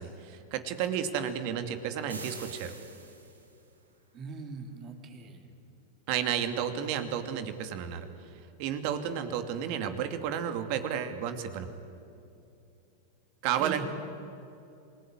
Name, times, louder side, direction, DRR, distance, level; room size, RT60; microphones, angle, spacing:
voice 1, 0.0-2.7 6.1-8.1 8.6-11.7 13.4-13.9, right 9 dB, 50° right, 9 dB, 2.5 m, -32 dB
sound 1, 2.1-3.6, right 3 dB, 90° right, 3.5 m, -45 dB
voice 2, 4.1-5.4 13.5-13.9, right 5 dB, 35° right, 6 dB, 3.6 m, -40 dB
28.0 x 20.5 x 9.7 m, 2.7 s
figure-of-eight pair, 90°, 0 cm